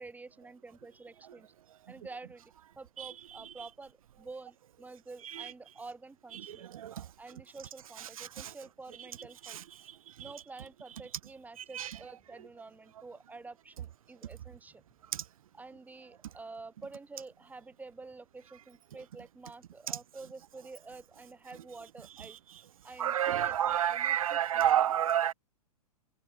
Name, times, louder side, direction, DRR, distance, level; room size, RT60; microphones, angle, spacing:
voice 1, 0.0-1.5 1.9-6.7 7.2-9.6 10.2-14.8 15.5-22.4 22.8-24.8, right 3 dB, 10° right, 4.2 m, -49 dB
voice 2, 6.4-7.0 8.2-8.5 11.7-11.9 15.1-15.2 23.0-25.3, right 10 dB, 60° right, 0.7 m, -29 dB
figure-of-eight pair, 110°, 20 cm